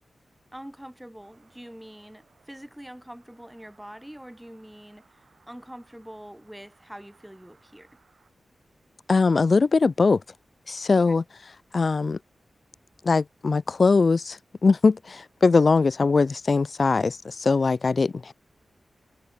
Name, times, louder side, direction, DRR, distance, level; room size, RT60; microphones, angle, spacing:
voice 1, 0.5-8.0 11.1-11.2, equal, 5° right, 2.8 m, -44 dB
sound 1, 1.2-8.3, right 5 dB, 60° right, 5.6 m, -64 dB
voice 2, 9.1-10.2 10.7-11.2 11.7-12.2 13.0-18.3, left 4 dB, 50° left, 0.3 m, -21 dB
wide cardioid pair, 95°, 0 cm